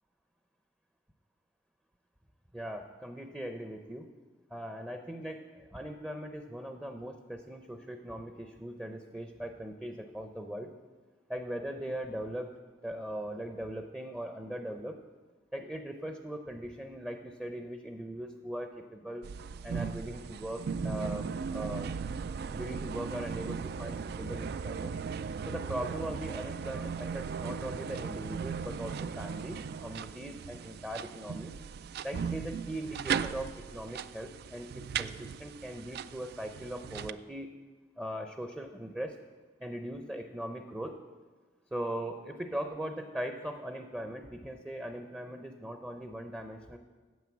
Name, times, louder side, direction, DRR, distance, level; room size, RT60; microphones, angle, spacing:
voice 1, 2.5-4.1 4.5-10.7 11.3-12.5 12.8-15.0 15.5-19.2 19.6-21.9 22.5-25.0 25.5-31.5 32.0-37.5 38.0-39.2 39.6-40.9 41.7-46.8, right 1 dB, 10° right, 5 dB, 0.6 m, -40 dB
sound 1, 19.2-37.1, right 6 dB, 60° right, 0.3 m, -37 dB
9.4 x 8.0 x 7.1 m, 1.4 s
head